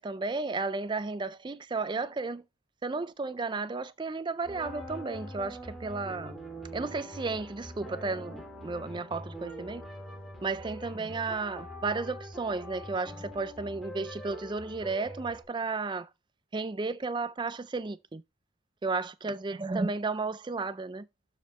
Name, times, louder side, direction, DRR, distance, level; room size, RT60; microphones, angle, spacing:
voice 1, 0.0-2.4 2.8-6.4 6.7-9.8 10.4-16.1 16.5-18.2 18.8-21.1, right 3 dB, 20° right, 0.4 m, -33 dB
sound 1, 4.4-15.4, equal, ahead, 2.6 m, -43 dB
12.5 x 4.9 x 3.1 m
head